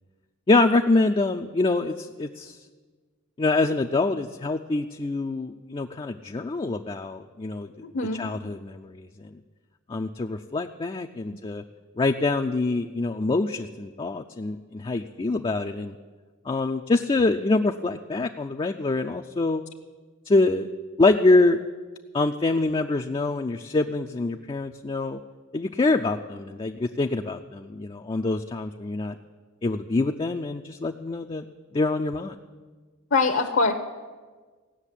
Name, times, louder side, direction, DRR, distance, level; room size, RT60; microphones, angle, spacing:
voice 1, 0.5-2.6 3.4-7.7 8.1-9.3 9.9-11.6 12.0-15.9 16.5-19.6 20.3-20.7 21.0-21.6 22.1-25.2 25.5-29.2 29.6-31.5 31.7-32.3, left 2 dB, 25° left, 4 dB, 0.4 m, -25 dB
voice 2, 33.1-33.7, left 3 dB, 60° left, 4 dB, 0.8 m, -22 dB
16.5 x 6.5 x 9.9 m, 1.4 s
head